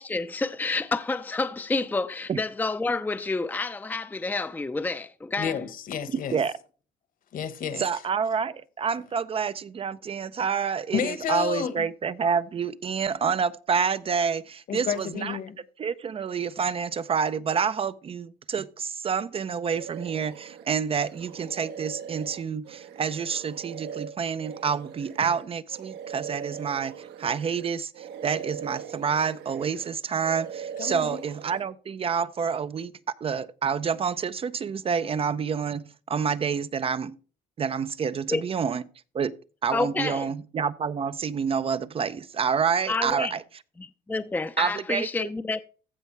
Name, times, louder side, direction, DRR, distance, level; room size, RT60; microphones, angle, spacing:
voice 1, 0.0-5.6 38.3-38.4 39.7-40.3 42.9-43.3 43.8-45.6, left 3 dB, 10° left, 0.6 m, -29 dB
voice 2, 5.4-6.4 7.3-7.8 10.9-11.9 14.7-15.6 30.8-31.2, left 8 dB, 55° left, 1.5 m, -31 dB
voice 3, 7.8-15.4 15.8-32.9 33.2-37.2 37.6-38.8 39.1-39.3 39.6-43.4 44.6-45.3, right 6 dB, 35° right, 0.6 m, -28 dB
sound 1, 19.7-20.7 21.1-27.7 27.9-29.9 30.2-31.6, right 8 dB, 85° right, 1.5 m, -40 dB
15.0 x 5.4 x 3.3 m
cardioid pair, 110°, 17 cm